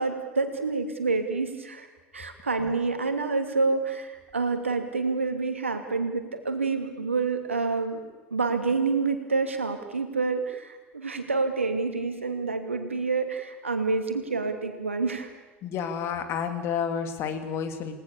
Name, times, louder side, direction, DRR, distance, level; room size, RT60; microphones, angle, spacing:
voice 1, 0.0-1.9 2.1-8.0 8.3-15.3, right 4 dB, 80° right, 6 dB, 2.7 m, -28 dB
voice 2, 15.6-18.0, left 7 dB, 40° left, 7 dB, 2.9 m, -30 dB
29.0 x 18.5 x 7.0 m, 1.2 s
figure-of-eight pair, 80°, 7 cm